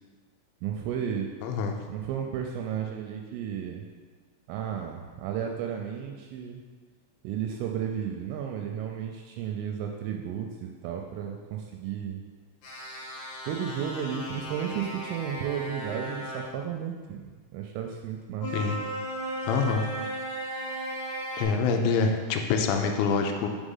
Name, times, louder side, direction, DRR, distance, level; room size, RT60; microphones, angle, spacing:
voice 1, 0.6-1.3 1.9-3.8 4.5-6.6 7.2-12.2 13.5-18.5, right 8 dB, 85° right, 2 dB, 2.9 m, -33 dB
voice 2, 1.4-1.8 18.5-18.8 19.5-19.9 21.4-23.5, left 5 dB, 85° left, 4 dB, 3.0 m, -25 dB
sound 1, 12.6-16.5 18.4-21.4, right 1 dB, 65° left, 2.8 m, -36 dB
7.2 x 3.4 x 5.4 m, 1.5 s
omnidirectional pair, 6.0 m